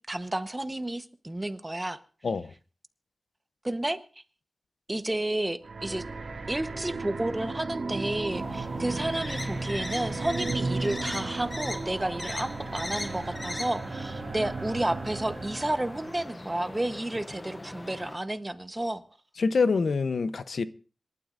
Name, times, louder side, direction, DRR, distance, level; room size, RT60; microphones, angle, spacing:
voice 1, 0.1-2.0 3.6-4.0 4.9-6.0 6.5-19.0, right 1 dB, 20° right, 1.0 m, -31 dB
sound 1, 5.6-16.2, right 3 dB, 75° right, 2.1 m, -35 dB
sound 2, 8.3-18.2, left 2 dB, 25° left, 0.7 m, -40 dB
voice 2, 19.4-20.7, left 4 dB, 80° left, 0.7 m, -25 dB
26.5 x 12.5 x 2.5 m
wide cardioid pair, 115°, 0 cm